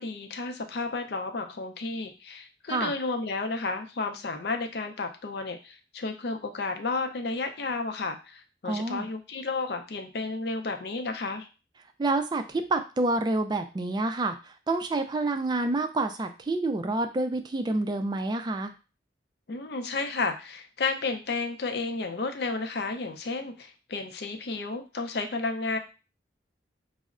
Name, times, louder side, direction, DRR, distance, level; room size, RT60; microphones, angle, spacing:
voice 1, 0.0-11.5 19.5-25.8, left 3 dB, 60° left, 5 dB, 0.5 m, -32 dB
voice 2, 8.6-9.1 12.0-14.3 14.7-18.7, right 2 dB, 25° right, 7 dB, 0.3 m, -28 dB
5.2 x 2.0 x 2.4 m, 0.32 s
head